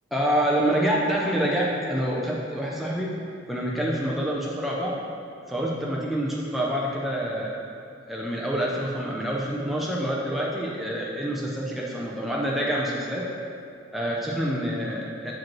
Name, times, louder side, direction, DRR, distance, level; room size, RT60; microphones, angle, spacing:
voice 1, 0.1-3.1 3.5-5.0 5.5-7.6 8.1-13.2 13.9-15.3, equal, ahead, -4 dB, 0.5 m, -27 dB
7.2 x 4.9 x 3.0 m, 2.4 s
head